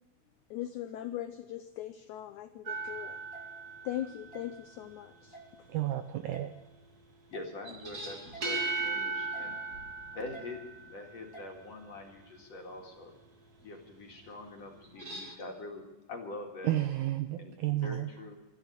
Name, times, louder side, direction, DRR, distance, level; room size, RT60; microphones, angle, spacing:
voice 1, 0.5-3.2 3.8-5.7 6.0-6.1, left 12 dB, 80° left, 9 dB, 1.7 m, -40 dB
sound 1, 2.7-4.6 7.7-11.3 14.8-15.3, right 3 dB, 35° right, 1.8 m, -37 dB
sound 2, 3.3-3.4 4.3-4.4 5.3-5.5 6.3-6.4 7.3-7.5 8.3-8.4 9.3-9.5 10.3-10.4 11.3-11.5, right 4 dB, 25° left, 0.4 m, -48 dB
voice 2, 5.7-6.5 16.6-18.1, right 14 dB, 80° right, 8 dB, 1.8 m, -31 dB
voice 3, 7.3-9.6 10.1-13.1 13.6-16.8 17.3-18.4, left 2 dB, 50° left, 1 dB, 3.0 m, -44 dB
13.0 x 12.5 x 8.4 m, 1.0 s
omnidirectional pair, 4.2 m